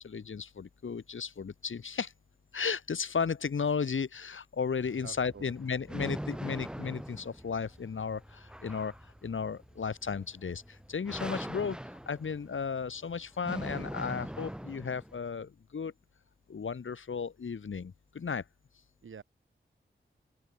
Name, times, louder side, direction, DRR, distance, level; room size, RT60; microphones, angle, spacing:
voice 1, 0.0-2.1 2.5-15.9 16.5-18.4, left 6 dB, 80° left, 4.7 m, -35 dB
sound 1, 4.8-15.2, equal, 5° right, 3.1 m, -42 dB
voice 2, 5.0-5.5 19.0-19.2, right 6 dB, 90° right, 6.0 m, -47 dB
open air
cardioid pair, 65°, 20 cm